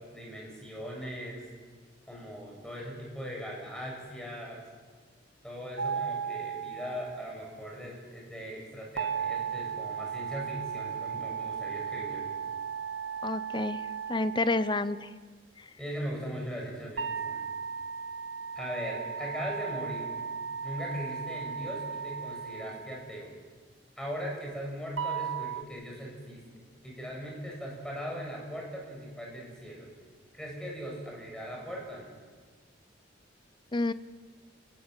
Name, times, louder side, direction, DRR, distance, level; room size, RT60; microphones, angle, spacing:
voice 1, 0.0-1.4 2.1-4.6 5.4-12.3 15.8-17.5 18.6-20.1 20.6-23.3 24.0-26.4 26.8-29.9 30.3-32.1, equal, 5° left, -2 dB, 7.4 m, -39 dB
sound 1, 5.8-7.3 9.0-15.0 17.0-23.1 25.0-25.6, right 6 dB, 75° right, 1.0 m, -36 dB
voice 2, 13.2-13.8 14.1-15.1 15.6-15.7 33.7-33.9, left 2 dB, 25° left, 15 dB, 0.7 m, -29 dB
29.5 x 15.5 x 9.0 m, 1.4 s
head